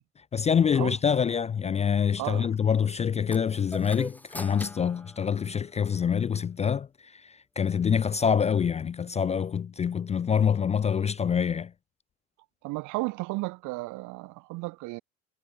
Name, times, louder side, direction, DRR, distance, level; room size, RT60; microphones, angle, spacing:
voice 1, 0.2-11.7, left 7 dB, 20° left, 0.4 m, -26 dB
sound 1, 3.3-6.0, left 1 dB, 5° left, 2.4 m, -43 dB
voice 2, 12.6-15.0, right 23 dB, 70° right, 5.4 m, -33 dB
supercardioid pair, 85°, 31 cm